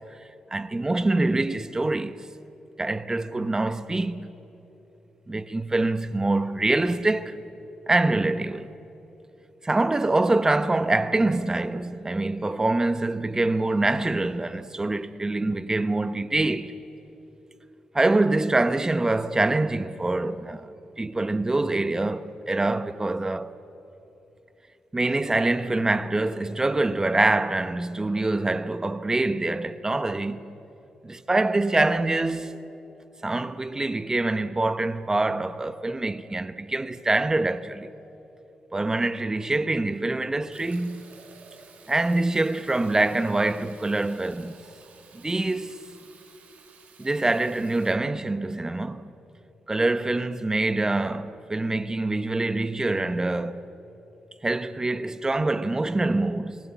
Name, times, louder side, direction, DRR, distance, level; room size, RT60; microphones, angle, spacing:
voice 1, 0.5-2.2 2.8-4.3 5.3-7.4 7.9-8.7 9.6-16.7 17.9-23.5 24.9-30.6 31.0-32.6 33.2-37.9 38.7-41.0 41.9-44.6 45.1-45.8 47.0-49.1 49.7-53.6 54.4-56.6, right 2 dB, 25° right, 1.2 m, -25 dB
Fill (with liquid), 40.5-48.0, right 5 dB, 70° right, 2.5 m, -53 dB
28.5 x 20.0 x 8.4 m
cardioid pair, 65°, 3 cm